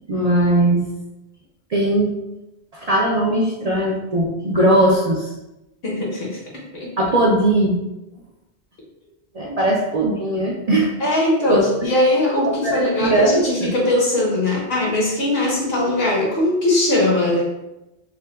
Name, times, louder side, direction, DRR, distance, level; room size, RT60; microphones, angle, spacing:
voice 1, 0.1-0.9 1.7-2.2 2.7-5.3 7.0-7.8 9.3-10.9 11.5-11.9 12.6-13.7, right 1 dB, 55° right, -3 dB, 0.5 m, -19 dB
voice 2, 5.8-6.4 6.7-6.9 9.5-9.6 11.0-17.4, left 1 dB, 65° left, -4 dB, 1.3 m, -20 dB
5.9 x 2.1 x 2.2 m, 0.95 s
omnidirectional pair, 1.1 m